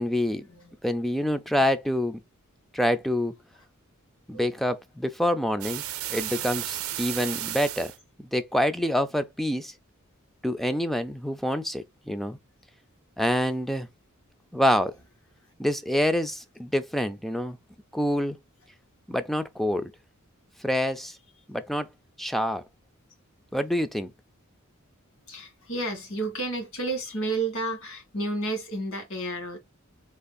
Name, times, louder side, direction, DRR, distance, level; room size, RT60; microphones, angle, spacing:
voice 1, 0.0-0.4 0.8-2.2 2.7-3.3 4.3-5.8 6.1-7.9 8.2-9.7 10.4-12.4 13.2-13.9 14.5-14.9 15.6-17.6 17.9-18.4 19.1-19.9 20.6-21.2 21.5-21.9 22.2-22.6 23.5-24.1, equal, ahead, 0.3 m, -26 dB
sound 1, 5.6-8.0, right 13 dB, 80° right, 0.6 m, -33 dB
voice 2, 25.3-29.6, right 2 dB, 70° left, 1.9 m, -32 dB
5.4 x 3.4 x 2.3 m
head